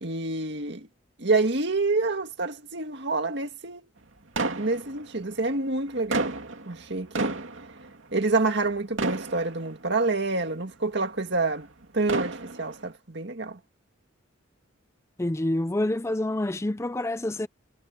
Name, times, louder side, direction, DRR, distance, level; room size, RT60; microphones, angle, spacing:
voice 1, 0.0-0.9 1.2-3.8 4.6-6.3 6.7-7.4 8.1-11.7 11.9-13.6, right 3 dB, 60° right, 2.1 m, -27 dB
sound 1, 4.4-5.4 5.9-8.7 9.0-10.0 10.7-10.8 11.8-12.9, right 2 dB, 75° right, 2.6 m, -31 dB
voice 2, 15.2-17.5, left 1 dB, 15° left, 0.5 m, -27 dB
head